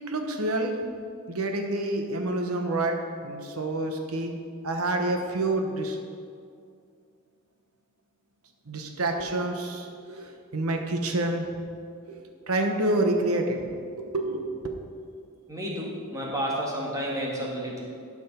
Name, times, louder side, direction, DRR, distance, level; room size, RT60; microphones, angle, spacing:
voice 1, 0.1-0.7 1.3-6.0 8.7-11.5 12.1-12.2 12.5-13.7 14.0-14.7, right 2 dB, 80° right, 4 dB, 1.1 m, -28 dB
voice 2, 15.5-17.8, equal, 15° right, -4 dB, 1.8 m, -31 dB
12.0 x 5.2 x 5.3 m, 2.3 s
head